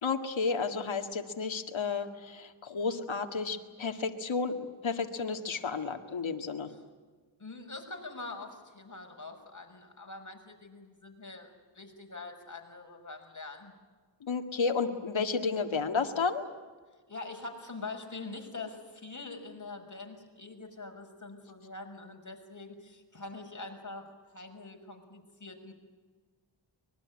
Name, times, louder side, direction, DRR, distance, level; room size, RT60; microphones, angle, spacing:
voice 1, 0.0-6.7 14.2-16.4, left 4 dB, 75° left, 5 dB, 2.0 m, -32 dB
voice 2, 7.4-13.7 17.1-25.7, left 3 dB, 40° left, 3 dB, 6.0 m, -44 dB
24.5 x 21.0 x 9.7 m, 1.4 s
wide cardioid pair, 60°, 47 cm